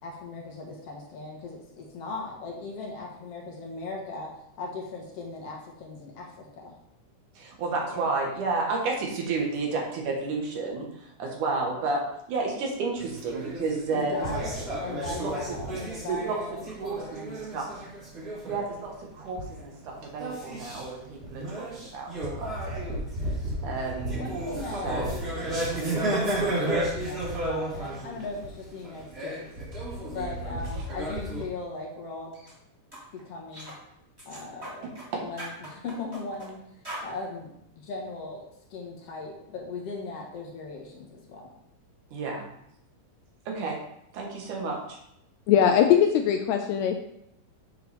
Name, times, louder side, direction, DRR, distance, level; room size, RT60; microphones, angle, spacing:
voice 1, 0.0-6.8 7.8-8.1 13.9-17.3 24.1-29.5 30.1-32.3 33.1-33.7 34.3-34.9 35.2-36.6 37.0-41.5, left 3 dB, 55° left, -1 dB, 2.2 m, -38 dB
voice 2, 7.3-12.0 12.3-14.4 15.2-15.3 16.1-16.4 16.8-17.7 18.4-22.9 23.6-24.3 24.8-25.2 30.7-30.8 34.8-35.2 42.1-42.4 43.5-43.8 44.1-45.0, right 3 dB, 75° right, -1 dB, 2.9 m, -31 dB
sound 1, 13.0-19.0 19.2-19.7 20.1-31.4, right 1 dB, 30° right, 2.5 m, -32 dB
sound 2, 32.3-32.5 32.9-33.1 33.5-33.8 34.2-35.1 35.4-36.5 36.8-37.1, right 1 dB, 10° right, 2.1 m, -41 dB
voice 3, 45.5-47.0, left 9 dB, 85° left, 5 dB, 1.6 m, -21 dB
8.0 x 6.7 x 3.5 m, 0.78 s
omnidirectional pair, 3.7 m